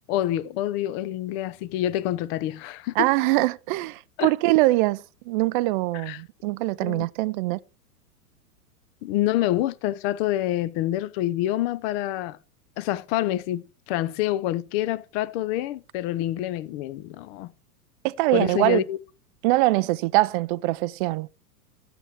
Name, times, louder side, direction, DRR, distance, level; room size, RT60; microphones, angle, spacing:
voice 1, 0.1-3.1 4.2-4.3 6.1-6.2 6.8-7.1 9.0-12.4 12.8-17.5 18.3-19.0, left 14 dB, 40° left, 0.9 m, -27 dB
voice 2, 3.0-7.6 18.0-18.8 19.4-21.3, right 19 dB, 35° right, 0.4 m, -23 dB
12.5 x 7.9 x 4.6 m
hypercardioid pair, 105°, 48 cm